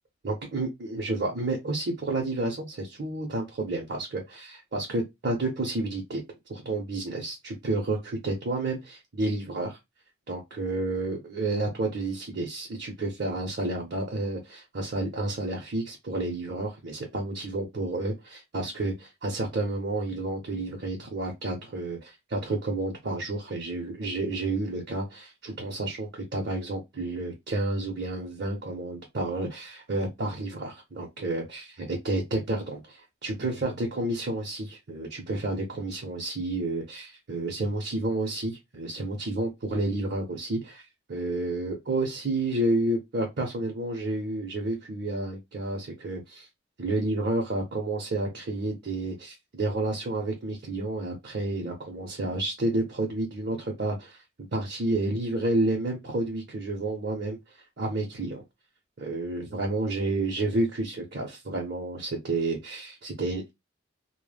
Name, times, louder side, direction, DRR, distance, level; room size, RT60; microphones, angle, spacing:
voice 1, 0.2-6.2 6.5-9.8 10.3-40.8 41.1-46.5 46.8-54.2 54.5-57.4 57.8-58.4 59.0-63.5, right 2 dB, 55° right, 0.6 m, -30 dB
2.1 x 2.0 x 3.1 m
head